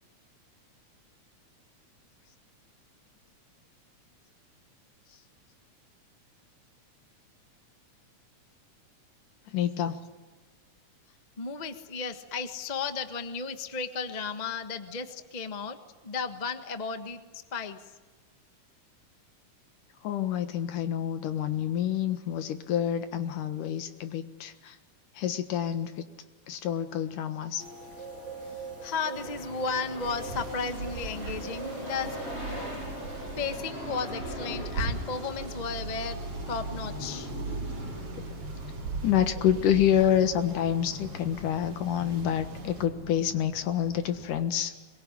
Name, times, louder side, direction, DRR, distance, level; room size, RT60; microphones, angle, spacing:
voice 1, 9.5-10.0 20.0-24.8 25.2-26.1 26.5-27.6 39.0-44.7, left 10 dB, 90° left, 9 dB, 3.1 m, -28 dB
voice 2, 11.4-15.8 16.0-17.2 17.5-17.8 28.8-32.2 33.4-36.2 36.5-37.3, left 5 dB, 70° left, 7 dB, 0.4 m, -34 dB
sound 1, 27.6-33.7, right 3 dB, 25° right, 1.9 m, -43 dB
sound 2, 29.1-44.4, left 1 dB, 45° left, 7.6 m, -41 dB
sound 3, 30.0-42.9, right 4 dB, 60° right, 3.6 m, -39 dB
23.5 x 22.0 x 10.0 m, 1.2 s
omnidirectional pair, 3.6 m